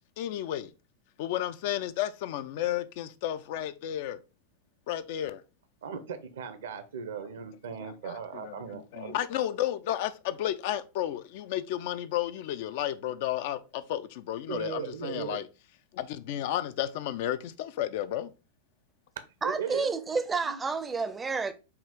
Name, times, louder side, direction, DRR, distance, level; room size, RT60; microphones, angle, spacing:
voice 1, 0.2-0.7 1.2-4.2 4.9-5.4 7.8-15.5 15.9-18.3, left 12 dB, 50° left, 0.3 m, -32 dB
voice 2, 5.8-9.2 14.5-15.4 19.4-19.9 20.4-20.6, right 7 dB, 60° right, 0.6 m, -37 dB
voice 3, 19.4-21.5, right 4 dB, 15° right, 0.5 m, -30 dB
5.6 x 2.4 x 3.5 m
figure-of-eight pair, 90°, 0 cm